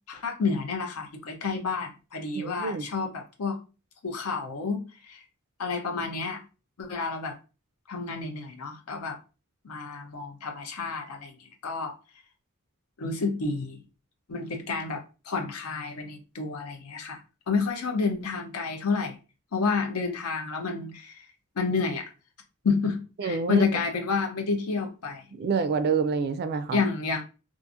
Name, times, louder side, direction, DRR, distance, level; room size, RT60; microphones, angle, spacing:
voice 1, 0.1-3.6 4.0-5.2 5.6-6.4 6.8-7.4 7.9-9.2 9.6-12.0 13.0-13.8 14.3-17.2 17.5-19.2 19.5-21.3 21.6-22.0 22.6-25.2 26.7-27.2, left 4 dB, 85° left, 0.6 m, -30 dB
voice 2, 2.4-2.8 23.2-23.6 25.3-26.8, right 5 dB, 50° right, 0.3 m, -27 dB
2.7 x 2.4 x 2.4 m
head